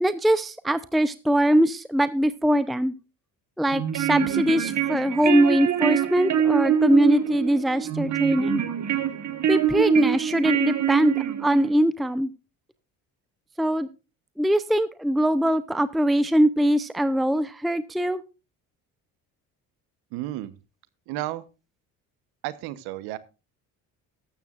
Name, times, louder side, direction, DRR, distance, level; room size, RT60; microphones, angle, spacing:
voice 1, 0.0-2.9 3.6-8.6 9.5-12.3 13.6-13.9 14.4-18.2, equal, ahead, 14 dB, 0.6 m, -22 dB
sound 1, 3.7-11.7, right 9 dB, 50° right, 1.6 m, -25 dB
voice 2, 20.1-20.5 21.1-21.4 22.4-23.2, right 15 dB, 85° right, 16 dB, 1.1 m, -32 dB
13.5 x 12.5 x 2.5 m, 0.30 s
supercardioid pair, 80°, 37 cm